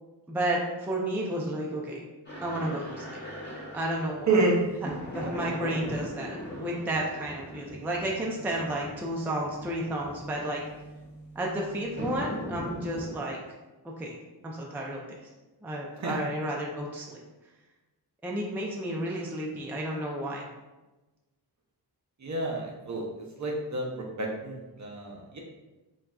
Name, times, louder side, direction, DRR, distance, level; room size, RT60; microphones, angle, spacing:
voice 1, 0.3-2.0 2.4-3.0 3.7-4.3 5.1-10.6 11.4-13.4 14.0-14.2 14.4-15.0 15.6-17.2 18.2-20.5, right 1 dB, 5° right, -2 dB, 0.4 m, -32 dB
sound 1, 2.2-13.2, equal, 25° left, 0.9 m, -40 dB
voice 2, 4.3-4.6 16.0-16.2 22.2-23.0 23.4-25.4, right 3 dB, 45° right, -1 dB, 0.6 m, -28 dB
3.9 x 2.3 x 2.3 m, 1.1 s
wide cardioid pair, 75°, 41 cm